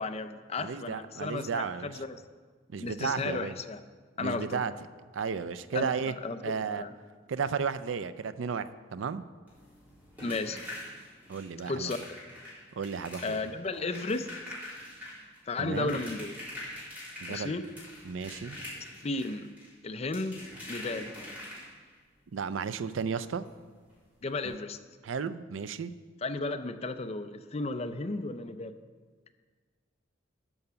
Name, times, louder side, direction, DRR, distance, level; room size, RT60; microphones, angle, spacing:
voice 1, 0.0-2.2 2.8-3.8 4.2-4.7 5.7-6.9 10.2-10.6 11.7-12.0 13.2-14.3 15.5-16.3 17.3-17.7 19.0-19.5 19.8-20.4 20.7-21.1 24.2-24.8 26.2-28.7, left 3 dB, 35° left, 9 dB, 0.5 m, -34 dB
voice 2, 0.6-1.9 2.7-3.6 4.2-4.7 5.1-6.1 6.4-6.8 7.3-9.3 11.3-11.9 12.8-13.4 15.6-16.0 17.2-17.5 18.1-18.6 22.3-23.5 25.0-25.9, right 6 dB, 85° right, 14 dB, 0.4 m, -33 dB
sound 1, 9.5-22.0 23.4-23.5 23.8-24.0 24.4-24.5, left 1 dB, 10° right, 3.6 m, -44 dB
11.0 x 5.7 x 6.8 m, 1.5 s
head